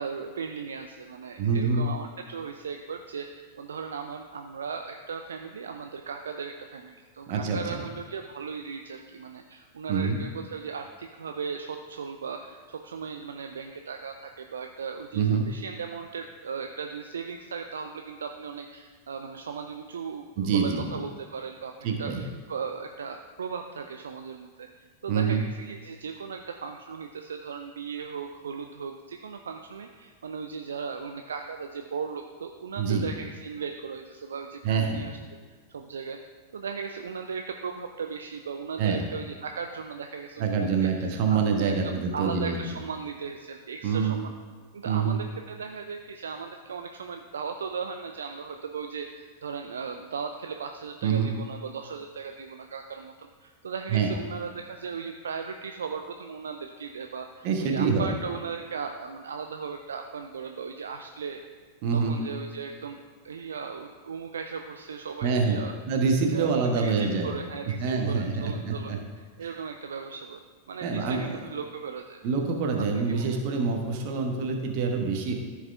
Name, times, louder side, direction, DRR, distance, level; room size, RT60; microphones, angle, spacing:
voice 1, 0.0-24.7 25.0-35.2 35.7-36.2 36.5-44.3 44.7-61.4 61.9-65.7 66.3-70.4 70.7-72.2 72.8-73.4, right 5 dB, 70° right, 5 dB, 0.4 m, -37 dB
voice 2, 1.4-1.8 7.3-7.8 9.9-10.2 15.1-15.4 20.4-20.9 21.8-22.2 25.1-25.4 32.8-33.1 34.6-35.0 38.8-39.0 40.4-42.6 43.8-44.2 44.8-45.2 51.0-51.3 53.9-54.1 57.4-58.2 61.8-62.2 65.2-65.6 65.9-67.3 67.8-69.0 69.4-69.5 70.8-71.4 72.2-75.3, right 5 dB, 45° right, 3 dB, 1.2 m, -26 dB
14.0 x 4.8 x 3.4 m, 1.5 s
figure-of-eight pair, 90°, 0 cm